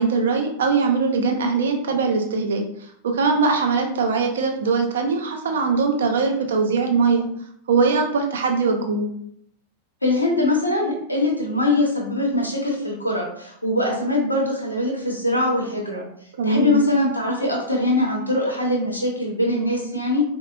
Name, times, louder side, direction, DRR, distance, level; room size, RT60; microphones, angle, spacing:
voice 1, 0.0-2.6 3.0-7.3 7.7-9.0 16.4-16.8, right 4 dB, 65° right, 3 dB, 0.5 m, -21 dB
voice 2, 10.0-16.0 16.4-20.2, left 2 dB, 85° left, -1 dB, 0.8 m, -22 dB
4.0 x 2.1 x 2.3 m, 0.68 s
figure-of-eight pair, 90°, 0 cm